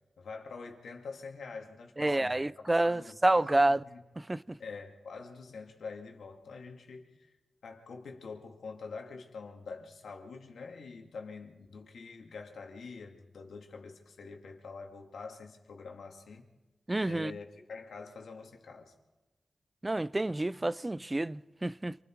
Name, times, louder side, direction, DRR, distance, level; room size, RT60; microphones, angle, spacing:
voice 1, 0.2-4.0 4.6-7.3 7.6-16.4 17.0-18.9, left 4 dB, 85° left, 2.5 m, -46 dB
voice 2, 2.0-3.8 4.3-4.4 16.9-17.3 19.8-22.0, right 2 dB, 25° right, 0.6 m, -28 dB
27.0 x 21.0 x 4.7 m
cardioid pair, 45°, 0 cm